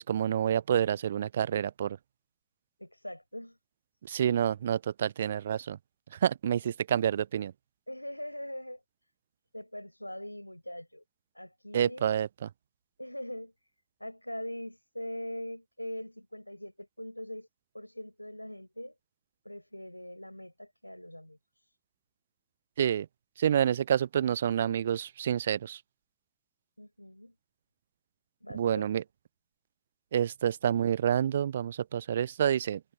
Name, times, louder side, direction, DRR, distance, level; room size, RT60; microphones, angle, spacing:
voice 1, 0.0-2.0 4.0-5.8 6.1-7.5 11.7-12.5 22.8-23.1 23.4-25.8 28.5-29.0 30.1-32.8, right 9 dB, 65° right, 0.4 m, -28 dB
voice 2, 2.8-3.6 7.9-8.8 9.5-11.0 11.3-12.1 13.0-13.5 14.0-17.5 17.7-19.0 19.4-21.4 26.8-27.3 28.4-28.9, left 1 dB, 90° left, 6.3 m, -41 dB
figure-of-eight pair, 90°, 0 cm